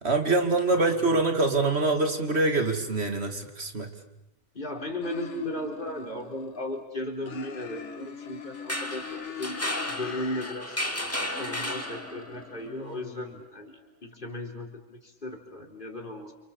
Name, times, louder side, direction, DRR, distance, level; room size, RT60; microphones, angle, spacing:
voice 1, 0.0-3.9, right 3 dB, 60° right, 5 dB, 2.8 m, -25 dB
voice 2, 4.5-16.3, left 1 dB, 45° left, 2 dB, 4.0 m, -36 dB
sound 1, 5.0-6.9 7.2-10.5 10.9-13.4, left 7 dB, 70° left, 1.8 m, -43 dB
sound 2, 8.5-12.4, left 1 dB, 10° left, 2.5 m, -33 dB
28.5 x 28.0 x 7.2 m, 0.86 s
omnidirectional pair, 1.2 m